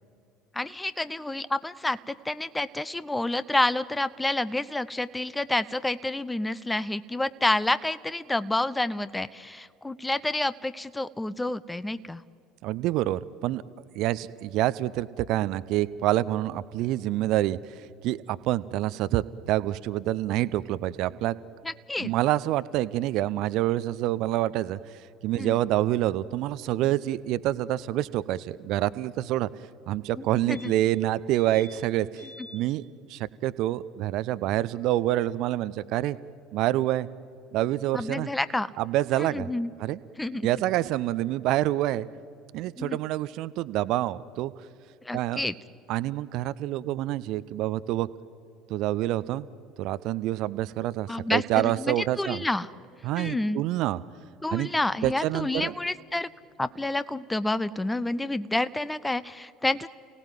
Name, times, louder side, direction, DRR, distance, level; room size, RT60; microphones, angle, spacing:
voice 1, 0.5-12.2 21.6-22.1 25.3-25.6 30.2-30.7 37.9-38.7 39.2-39.7 40.2-40.5 42.8-43.0 45.0-45.5 51.1-52.7 53.2-53.6 54.4-56.3 56.6-59.9, left 2 dB, 10° left, 16 dB, 0.7 m, -29 dB
voice 2, 12.6-13.6 13.9-21.4 22.0-24.8 25.2-29.5 29.9-32.3 32.5-32.8 33.1-36.2 36.5-37.1 37.5-38.3 38.8-39.5 39.8-40.0 40.4-42.1 42.5-44.5 45.1-45.4 45.9-48.1 48.7-49.5 49.8-52.4 53.0-54.0 54.5-54.7 55.0-55.7, right 14 dB, 50° right, 16 dB, 0.6 m, -27 dB
sound 1, 30.2-30.3 30.5-31.0 31.3-31.8 32.1-32.6 35.0-35.1 35.3-35.4, left 2 dB, 65° left, 3.8 m, -48 dB
29.0 x 17.5 x 9.2 m, 2.6 s
figure-of-eight pair, 65°, 0 cm